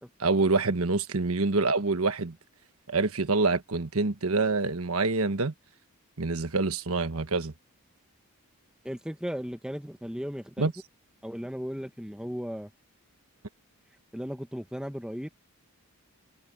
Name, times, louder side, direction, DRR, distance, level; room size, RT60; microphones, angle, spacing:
voice 1, 0.2-2.3 2.9-5.5 6.2-7.5 10.6-10.7, right 3 dB, 80° right, 1.3 m, -26 dB
voice 2, 8.8-10.7 11.2-12.7 14.1-15.3, equal, 5° right, 1.4 m, -36 dB
head